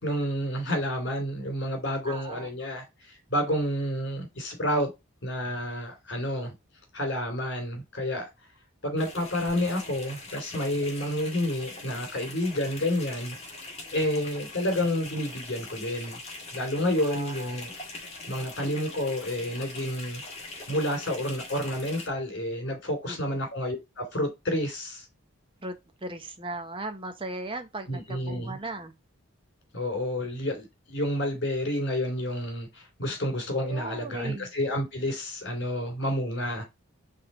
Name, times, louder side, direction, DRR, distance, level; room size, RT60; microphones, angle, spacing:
voice 1, 0.0-4.9 5.2-6.5 6.9-8.3 8.8-13.6 13.9-16.2 16.5-17.7 18.3-20.2 20.7-25.1 27.9-28.6 29.7-36.6, left 1 dB, 50° left, 2.9 m, -30 dB
voice 2, 2.1-2.5 13.8-14.0 17.0-17.6 23.1-23.4 25.6-28.9 33.6-34.5, right 2 dB, 25° right, 0.9 m, -38 dB
sound 1, 9.0-22.1, left 2 dB, 30° left, 1.8 m, -42 dB
4.8 x 3.7 x 5.4 m
head